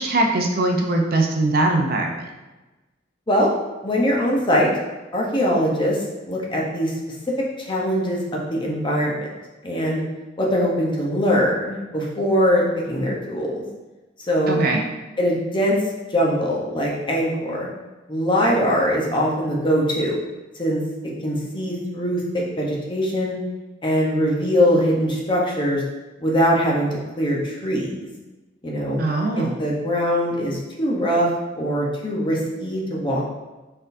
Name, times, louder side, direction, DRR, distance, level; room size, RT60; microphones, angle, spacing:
voice 1, 0.0-2.2 14.5-14.8 29.0-29.6, right 2 dB, 50° right, 2 dB, 0.5 m, -21 dB
voice 2, 3.8-4.7 5.1-6.9 7.3-9.3 9.6-10.0 10.4-13.6 14.3-14.6 15.2-15.8 16.1-17.7 18.1-20.2 20.5-20.8 21.2-23.4 23.8-25.8 26.2-28.1 28.6-29.1 29.4-33.2, equal, 25° left, -3 dB, 0.8 m, -22 dB
4.4 x 3.7 x 2.6 m, 1.1 s
head